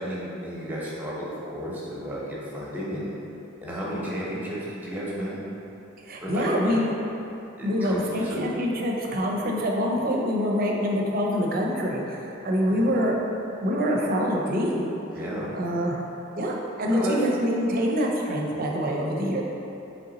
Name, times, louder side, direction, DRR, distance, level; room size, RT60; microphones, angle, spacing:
voice 1, 0.0-3.2 3.6-5.4 6.2-6.8 7.6-8.5 12.7-12.8 15.1-15.5 16.8-17.1, equal, 10° right, -6 dB, 0.8 m, -33 dB
voice 2, 6.0-6.9 7.6-13.1 13.6-15.0 15.5-16.0 16.4-19.4, equal, 45° right, -1 dB, 0.5 m, -25 dB
3.9 x 3.3 x 3.9 m, 2.9 s
head